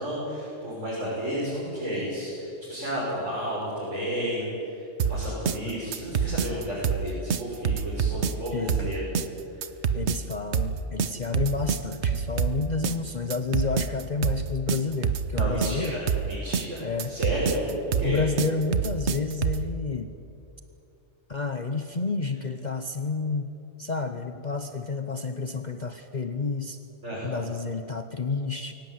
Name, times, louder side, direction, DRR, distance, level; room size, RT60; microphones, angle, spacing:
voice 1, 0.0-9.0 15.3-17.5 17.9-18.2 27.0-27.4, equal, 85° right, -8 dB, 7.0 m, -32 dB
sound 1, 5.0-19.7, right 7 dB, 70° right, 1.2 m, -27 dB
voice 2, 8.5-8.9 9.9-16.0 16.8-17.2 18.0-20.1 21.3-23.5 23.8-26.8 27.2-28.7, left 4 dB, 40° left, 8 dB, 1.0 m, -30 dB
23.5 x 17.5 x 9.7 m, 2.8 s
omnidirectional pair, 1.2 m